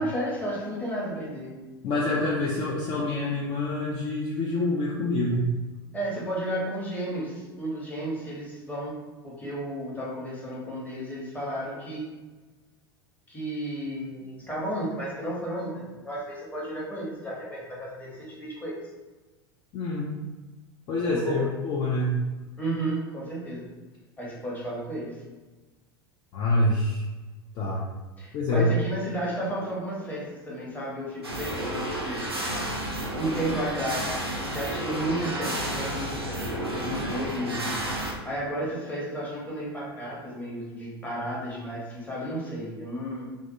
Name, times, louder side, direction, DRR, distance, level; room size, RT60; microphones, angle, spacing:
voice 1, 0.0-1.5 5.9-12.2 13.3-18.9 21.0-21.5 22.6-23.8 24.2-25.2 28.2-32.4 33.1-43.4, right 1 dB, 10° left, -5 dB, 0.9 m, -33 dB
voice 2, 1.8-5.4 19.7-20.1 20.9-22.1 26.3-27.0 27.6-27.8 28.3-28.7, left 2 dB, 35° left, -4 dB, 0.4 m, -26 dB
sound 1, 31.2-38.1, right 1 dB, 90° right, 0.5 m, -31 dB
2.5 x 2.3 x 2.6 m, 1.2 s
figure-of-eight pair, 80°, 13 cm